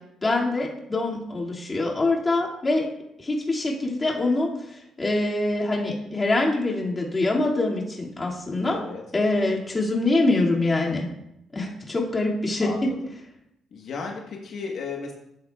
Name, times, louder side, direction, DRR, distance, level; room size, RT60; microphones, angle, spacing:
voice 1, 0.2-2.9 3.2-8.8 9.1-11.1 11.5-12.9, left 2 dB, 25° left, -3 dB, 2.4 m, -24 dB
voice 2, 8.6-9.0 12.6-13.0 13.7-15.1, left 4 dB, 65° left, -1 dB, 1.3 m, -34 dB
12.5 x 8.3 x 2.4 m, 0.81 s
cardioid pair, 90°, 0 cm